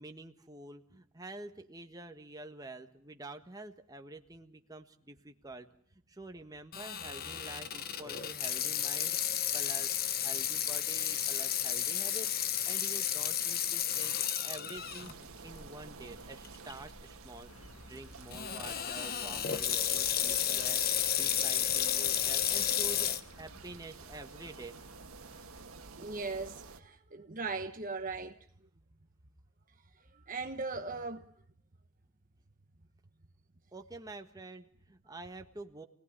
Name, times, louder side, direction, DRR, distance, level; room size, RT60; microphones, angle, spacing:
voice 1, 0.0-5.7 5.9-24.7 33.7-35.9, right 2 dB, 15° right, 1.5 m, -48 dB
Water tap faucet / Sink (filling or washing), 6.7-15.1 15.6-15.7 16.5-16.7 18.3-23.2, left 9 dB, 45° left, 1.2 m, -32 dB
sound 1, 14.7-26.8, right 4 dB, 75° right, 1.7 m, -51 dB
sound 2, 17.4-25.7, left 1 dB, 75° left, 6.6 m, -58 dB
voice 2, 26.0-28.4 30.3-31.2, right 4 dB, 35° right, 1.2 m, -38 dB
28.5 x 18.5 x 9.9 m
head